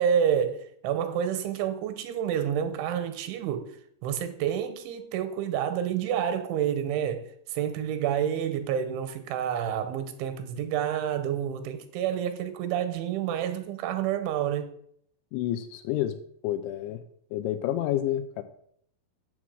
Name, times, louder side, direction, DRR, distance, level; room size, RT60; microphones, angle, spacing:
voice 1, 0.0-3.7 4.0-14.7, right 9 dB, 80° right, 3.0 m, -29 dB
voice 2, 15.3-16.2 16.4-17.0 17.3-18.4, left 12 dB, 85° left, 2.7 m, -29 dB
7.4 x 7.2 x 6.2 m
omnidirectional pair, 5.6 m